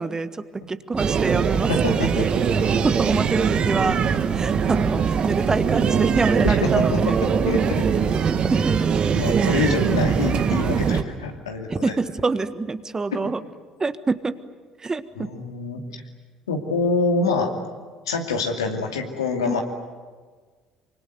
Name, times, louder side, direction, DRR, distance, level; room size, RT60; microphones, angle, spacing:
voice 1, 0.0-1.7 2.0-2.3 2.7-7.2 8.3-8.9 11.7-13.4 13.8-14.4 14.8-15.3 19.4-19.6, right 3 dB, 25° right, 12 dB, 1.5 m, -26 dB
sound 1, 1.0-11.0, right 6 dB, 45° right, 1.9 m, -21 dB
voice 2, 1.7-2.2 6.4-7.9 9.1-11.9 15.2-15.8 16.5-17.5 18.1-19.6, left 3 dB, 85° left, 3 dB, 2.5 m, -25 dB
25.0 x 24.5 x 9.5 m, 1.5 s
hypercardioid pair, 55°, 2 cm